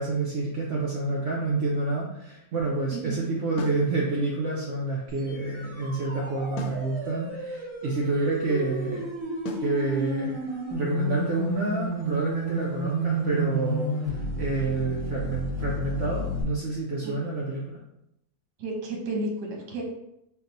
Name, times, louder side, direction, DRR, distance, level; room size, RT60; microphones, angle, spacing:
voice 1, 0.0-9.1 9.6-17.6, right 3 dB, 65° right, -3 dB, 0.8 m, -28 dB
sound 1, 3.6-3.9 6.6-6.9 9.5-9.8, left 2 dB, 75° left, 1.1 m, -35 dB
sound 2, 5.1-16.4, right 1 dB, 35° right, 0.4 m, -32 dB
voice 2, 18.6-19.8, right 2 dB, 85° right, 0 dB, 1.4 m, -32 dB
4.3 x 2.1 x 3.9 m, 0.83 s
omnidirectional pair, 1.7 m